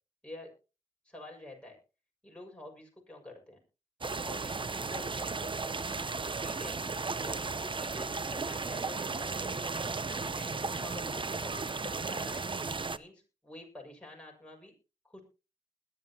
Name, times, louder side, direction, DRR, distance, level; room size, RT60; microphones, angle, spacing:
voice 1, 1.0-1.8 2.2-3.6 4.2-5.5 6.4-6.8 7.2-12.4 12.9-14.7 15.0-15.2, left 2 dB, 10° left, -1 dB, 6.3 m, -48 dB
sound 1, 4.0-13.0, right 4 dB, 40° right, 0.7 m, -35 dB
sound 2, 7.3-12.8, right 3 dB, 85° right, 3.8 m, -57 dB
21.0 x 11.0 x 2.9 m, 0.32 s
wide cardioid pair, 75°, 13 cm